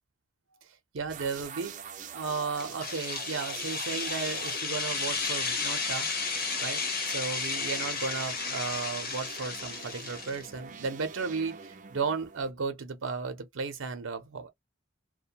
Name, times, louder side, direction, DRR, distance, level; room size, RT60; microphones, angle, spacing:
voice 1, 0.9-1.8 2.1-6.1 6.6-14.5, right 4 dB, 85° right, 0.6 m, -34 dB
sound 1, 1.1-12.5, right 6 dB, 40° right, 0.4 m, -45 dB
sound 2, 2.6-10.5, left 4 dB, 50° left, 0.9 m, -33 dB
2.3 x 2.2 x 2.7 m
head